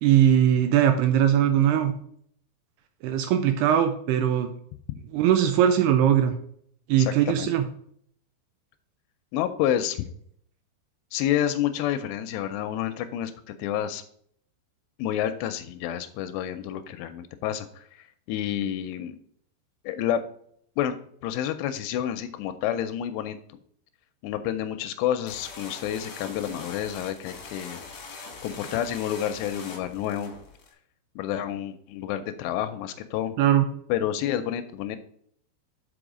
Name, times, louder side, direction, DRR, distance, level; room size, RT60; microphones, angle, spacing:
voice 1, 0.0-1.9 3.0-4.5 5.1-6.4 6.9-7.6 33.4-33.6, right 10 dB, 80° right, 7 dB, 2.4 m, -20 dB
voice 2, 7.0-7.5 9.3-10.0 11.1-14.0 15.0-19.2 19.8-20.2 20.8-21.0 21.2-23.6 24.2-27.8 28.1-30.3 31.2-33.4 33.9-35.0, left 11 dB, 85° left, 10 dB, 2.6 m, -29 dB
sound 1, 25.3-30.7, left 4 dB, 60° left, 2.0 m, -42 dB
6.2 x 5.2 x 4.8 m, 0.64 s
omnidirectional pair, 5.1 m